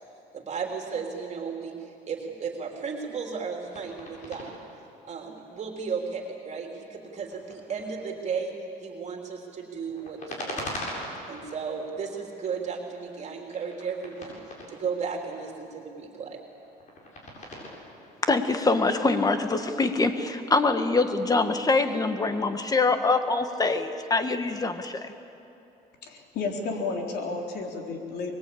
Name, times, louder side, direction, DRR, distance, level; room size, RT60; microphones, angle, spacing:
voice 1, 0.3-1.7 2.1-4.6 5.0-8.5 8.8-10.7 11.3-14.4 14.7-16.4, right 5 dB, 40° right, 1 dB, 3.3 m, -34 dB
sound 1, 3.5-4.5 5.0-6.3 7.0-8.2 9.7-11.5 12.0-12.6 12.9-15.1 15.8-17.7, left 1 dB, 45° left, 7.7 m, -41 dB
voice 2, 18.2-25.1, left 3 dB, 20° left, 8 dB, 1.7 m, -24 dB
voice 3, 26.0-28.3, left 4 dB, 70° left, 1 dB, 3.9 m, -32 dB
24.5 x 21.5 x 8.6 m, 2.9 s
cardioid pair, 110°, 17 cm